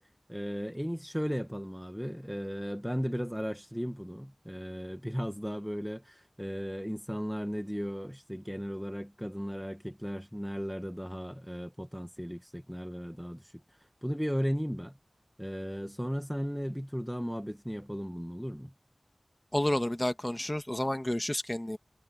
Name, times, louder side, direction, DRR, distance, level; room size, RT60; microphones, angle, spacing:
voice 1, 0.3-13.5 14.0-15.0 15.4-18.7, equal, ahead, 1.2 m, -36 dB
voice 2, 19.5-21.8, left 1 dB, 25° left, 1.7 m, -30 dB
wide cardioid pair, 40°, 0 cm